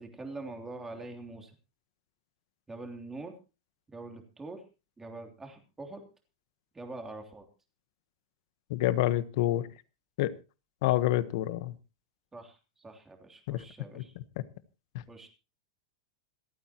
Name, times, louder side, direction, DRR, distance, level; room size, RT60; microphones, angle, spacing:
voice 1, 0.0-1.5 2.7-3.3 3.9-4.6 5.0-6.1 6.7-7.5 12.3-14.2 15.1-15.3, right 2 dB, 10° right, 4 dB, 3.1 m, -44 dB
voice 2, 8.7-9.7 10.2-10.3 10.8-11.7 13.5-13.6 13.9-14.0, left 14 dB, 60° left, 14 dB, 1.3 m, -27 dB
27.0 x 9.2 x 3.0 m, 0.32 s
supercardioid pair, 145°, 3 cm